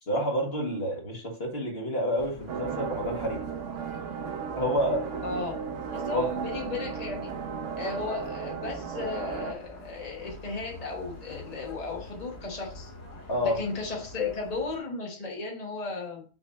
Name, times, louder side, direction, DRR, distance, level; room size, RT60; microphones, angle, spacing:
voice 1, 0.1-3.5 4.5-5.4 6.1-6.3 13.3-13.6, equal, 50° left, 2.0 m, -29 dB
sound 1, 2.2-14.8, left 1 dB, 85° left, 2.4 m, -47 dB
sound 2, 2.5-9.5, right 6 dB, 80° right, 1.0 m, -35 dB
voice 2, 5.2-5.6 5.9-7.3 7.8-12.9 13.4-16.2, left 3 dB, 30° left, 1.3 m, -35 dB
6.3 x 3.1 x 5.1 m
omnidirectional pair, 1.3 m